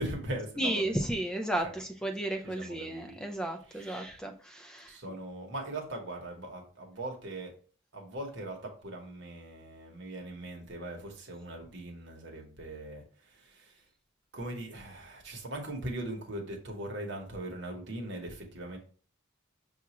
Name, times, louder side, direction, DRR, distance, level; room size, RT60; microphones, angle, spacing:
voice 1, 0.0-0.8 1.6-1.7 2.4-3.2 3.7-4.2 4.9-7.5 7.9-13.8 14.3-18.8, right 1 dB, 55° right, 1.0 m, -40 dB
voice 2, 0.6-4.9, right 1 dB, 5° left, 0.4 m, -33 dB
5.7 x 2.4 x 2.9 m
head